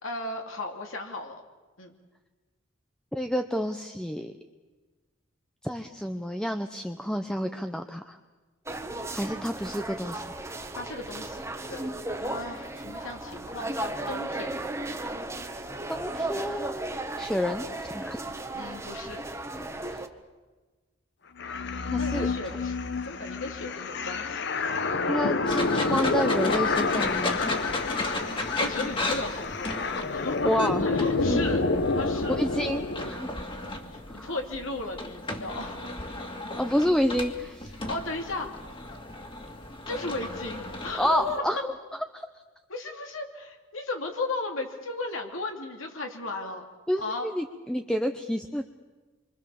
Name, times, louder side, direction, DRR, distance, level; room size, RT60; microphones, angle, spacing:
voice 1, 0.0-1.4 1.8-1.9 10.7-11.4 11.7-14.6 18.5-19.2 19.5-19.8 22.0-22.8 23.0-24.8 28.0-31.6 31.9-32.4 33.9-35.9 37.8-38.7 39.9-41.4 42.7-46.6 47.0-47.3, left 2 dB, 80° left, 3 dB, 2.8 m, -36 dB
voice 2, 3.1-4.3 5.6-8.2 9.1-10.3 15.9-18.2 19.8-20.0 21.9-22.3 25.1-27.4 30.4-30.9 31.3-31.4 32.4-33.3 34.1-34.3 36.6-37.7 41.0-41.7 42.1-42.3 46.9-48.6, equal, 5° left, 6 dB, 0.8 m, -29 dB
sound 1, 8.7-20.1, right 2 dB, 15° right, 1.4 m, -35 dB
sound 2, 21.4-33.1, left 3 dB, 60° left, 1.1 m, -28 dB
sound 3, 25.5-41.4, left 2 dB, 25° left, 2.4 m, -35 dB
27.5 x 24.5 x 7.1 m, 1.3 s
head